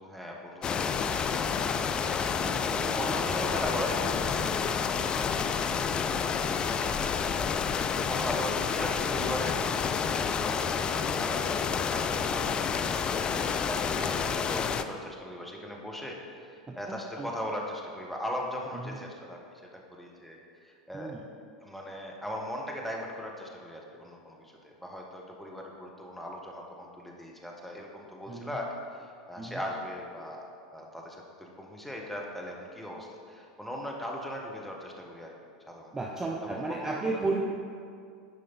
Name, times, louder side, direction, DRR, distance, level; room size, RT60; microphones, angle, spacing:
voice 1, 0.0-1.6 2.3-5.3 5.6-19.6 19.9-21.2 21.6-28.7 28.9-30.4 30.7-35.3 35.7-35.9 36.4-37.2, equal, 5° left, -1 dB, 1.3 m, -39 dB
sound 1, 0.6-14.8, left 6 dB, 25° left, 0.4 m, -29 dB
voice 2, 16.7-17.3 18.7-19.0 20.9-21.3 28.3-28.6 29.4-29.6 35.9-37.4, right 3 dB, 15° right, -1 dB, 0.7 m, -34 dB
9.6 x 5.1 x 4.1 m, 2.3 s
figure-of-eight pair, 80°, 3 cm